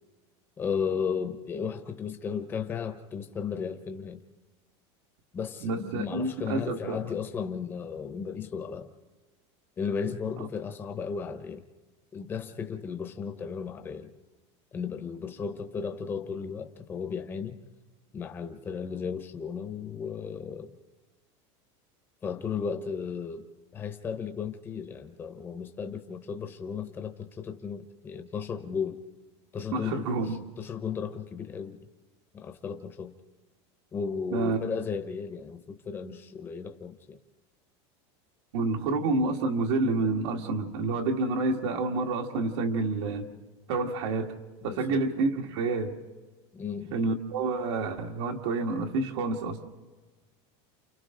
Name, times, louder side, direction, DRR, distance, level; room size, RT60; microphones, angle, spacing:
voice 1, 0.6-4.2 5.3-8.9 9.8-11.6 12.1-14.1 14.7-17.6 18.1-20.8 22.2-23.5 23.7-29.0 29.5-30.3 30.6-31.8 32.3-33.2 33.9-37.2 44.6-45.0 46.5-47.0, left 6 dB, 15° left, 6 dB, 0.8 m, -35 dB
voice 2, 5.6-7.0 29.7-30.4 34.3-34.6 38.5-43.3 43.7-46.0 46.9-49.6, right 3 dB, 75° right, 2 dB, 1.9 m, -28 dB
29.5 x 29.0 x 3.8 m, 1.3 s
supercardioid pair, 180°, 15 cm